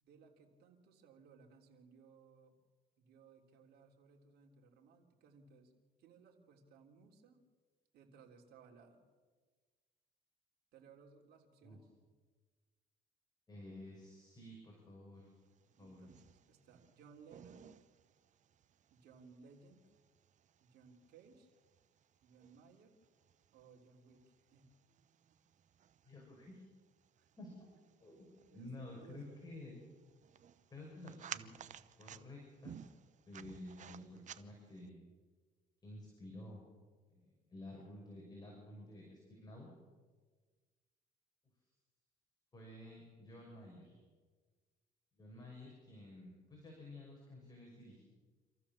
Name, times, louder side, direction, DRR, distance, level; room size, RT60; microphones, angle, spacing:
voice 1, 0.0-2.6 3.0-5.7 6.0-7.4 7.9-9.0 10.7-11.9 15.8-17.7 18.9-19.9 20.6-21.5 22.2-22.9 23.5-24.7 25.3-25.4 27.2-27.3 28.5-29.4, right 5 dB, 70° right, 1 dB, 3.6 m, -62 dB
voice 2, 13.5-15.3 15.8-16.0 26.0-26.6 27.4-27.7 28.0-29.8 30.7-31.5 32.0-32.8 33.3-35.0 35.8-36.6 37.1-39.7 42.5-44.0 45.1-48.0, left 1 dB, 25° left, -2 dB, 6.2 m, -52 dB
sound 1, 15.5-34.9, right 9 dB, 45° right, 0.9 m, -57 dB
27.0 x 14.5 x 7.3 m, 1.4 s
cardioid pair, 110°, 17 cm